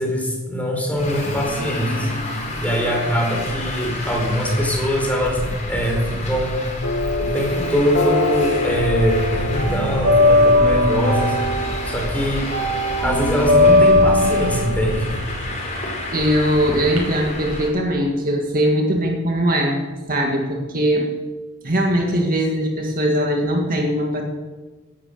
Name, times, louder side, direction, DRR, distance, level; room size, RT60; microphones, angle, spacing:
voice 1, 0.0-2.1 2.6-6.7 7.2-11.4 11.8-12.5 13.0-15.1, equal, 5° left, 0 dB, 4.7 m, -22 dB
Traffic noise roadway noise, 1.0-17.7, left 1 dB, 35° left, 4.6 m, -29 dB
sound 1, 6.8-11.9, left 3 dB, 65° left, 1.8 m, -26 dB
sound 2, 7.7-8.8 9.1-17.0, left 1 dB, 75° right, 5.9 m, -19 dB
voice 2, 16.1-19.8 20.1-21.2 21.6-24.2, equal, 45° right, 1 dB, 2.0 m, -20 dB
18.0 x 11.5 x 6.7 m, 1.3 s
head